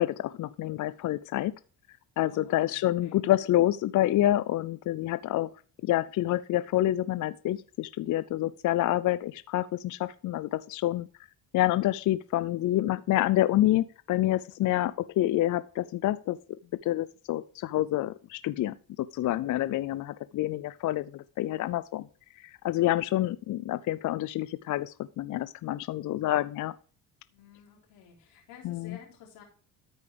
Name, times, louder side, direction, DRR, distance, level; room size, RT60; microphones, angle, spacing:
voice 1, 0.0-1.5 2.2-5.5 5.8-11.1 11.5-16.4 16.8-22.0 22.4-26.7 28.6-29.0, left 14 dB, 50° left, 15 dB, 0.4 m, -28 dB
voice 2, 2.2-3.2 5.0-5.3 27.3-29.4, left 8 dB, 85° left, -1 dB, 3.6 m, -53 dB
13.0 x 4.8 x 3.4 m, 0.41 s
supercardioid pair, 75°, 40 cm